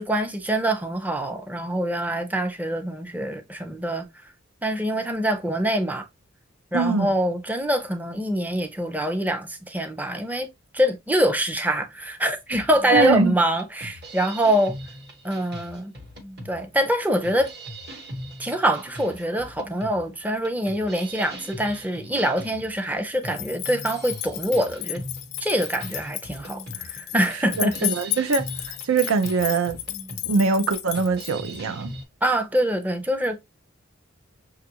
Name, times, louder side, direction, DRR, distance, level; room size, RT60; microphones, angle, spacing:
voice 1, 0.0-4.1 4.6-6.1 6.7-10.5 10.7-14.8 15.2-15.9 16.5-17.5 18.4-25.0 25.4-27.9 32.2-33.4, right 1 dB, 10° right, 0.4 m, -24 dB
voice 2, 6.7-7.1 12.9-13.4 27.6-29.8 30.3-31.9, right 4 dB, 80° right, 0.5 m, -23 dB
sound 1, 12.5-32.0, equal, 50° right, 1.0 m, -40 dB
sound 2, 23.3-31.6, left 15 dB, 85° left, 0.6 m, -33 dB
5.9 x 2.4 x 2.8 m
head